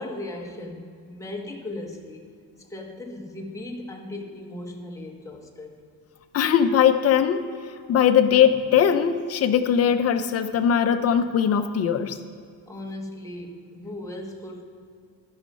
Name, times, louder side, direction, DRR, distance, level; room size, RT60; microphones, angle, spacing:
voice 1, 0.0-2.3 2.7-5.8 12.7-14.6, left 1 dB, 10° left, 1 dB, 1.0 m, -37 dB
voice 2, 6.3-7.4 7.9-12.2, left 8 dB, 40° left, 9 dB, 0.6 m, -20 dB
11.5 x 6.5 x 5.4 m, 2.2 s
cardioid pair, 145°, 38 cm